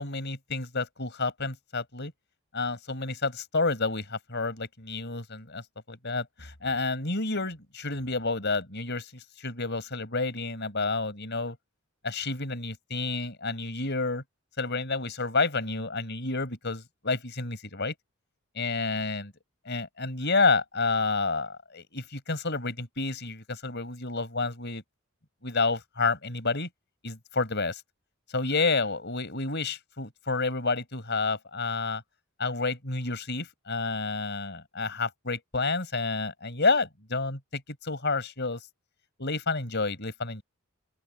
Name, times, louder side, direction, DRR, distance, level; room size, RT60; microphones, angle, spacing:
voice 1, 0.0-2.1 2.5-5.6 5.9-11.6 12.0-14.2 14.6-17.9 18.5-19.3 19.6-24.8 25.4-26.7 27.0-27.8 28.3-32.0 32.4-38.6 39.2-40.4, left 3 dB, 50° left, 5.0 m, -29 dB
open air
head